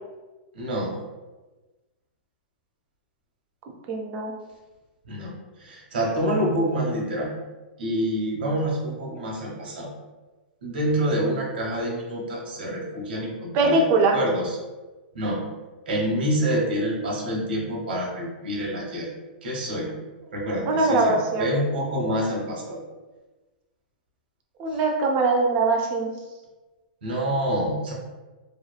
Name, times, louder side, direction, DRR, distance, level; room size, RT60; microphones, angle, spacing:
voice 1, 0.5-0.9 5.1-5.3 5.6-7.3 7.8-9.9 10.6-13.8 14.1-14.5 15.1-15.4 15.9-19.1 19.4-19.9 20.3-22.8 24.7-24.8 27.0-27.9, equal, 80° right, -1 dB, 0.8 m, -27 dB
voice 2, 3.9-4.3 13.5-14.2 20.7-21.5 24.6-26.1, right 3 dB, 30° right, 1 dB, 0.4 m, -21 dB
2.8 x 2.2 x 2.3 m, 1.2 s
hypercardioid pair, 150°, 5 cm